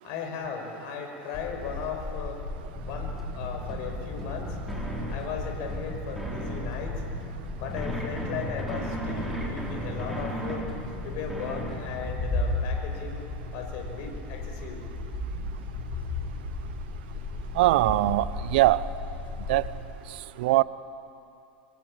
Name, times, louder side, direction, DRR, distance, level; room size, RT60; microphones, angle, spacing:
voice 1, 0.0-2.4 2.8-4.6 5.1-7.0 7.6-10.6 11.0-13.3 13.5-14.8, left 6 dB, 55° left, 4 dB, 5.6 m, -37 dB
sound 1, 1.3-19.8, left 2 dB, 25° left, 6.7 m, -35 dB
sound 2, 2.7-12.2, equal, ahead, 6.7 m, -36 dB
voice 2, 17.6-18.8 19.5-19.6 20.4-20.6, right 17 dB, 65° right, 17 dB, 0.7 m, -21 dB
25.0 x 24.5 x 8.9 m, 2.7 s
figure-of-eight pair, 80°, 6 cm